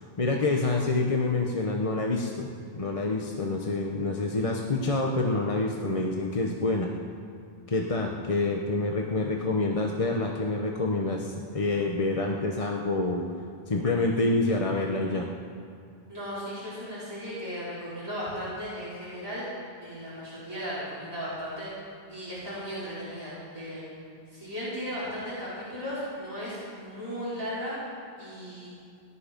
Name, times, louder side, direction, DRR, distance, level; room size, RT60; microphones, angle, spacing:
voice 1, 0.2-2.5 2.7-6.9 7.7-13.2 13.7-15.3, left 2 dB, 35° left, 1 dB, 0.9 m, -27 dB
voice 2, 16.1-19.5 19.8-21.7 22.1-23.8 24.3-27.8 28.2-28.7, equal, 25° right, -12 dB, 4.3 m, -36 dB
18.0 x 11.5 x 5.2 m, 2.4 s
omnidirectional pair, 1.1 m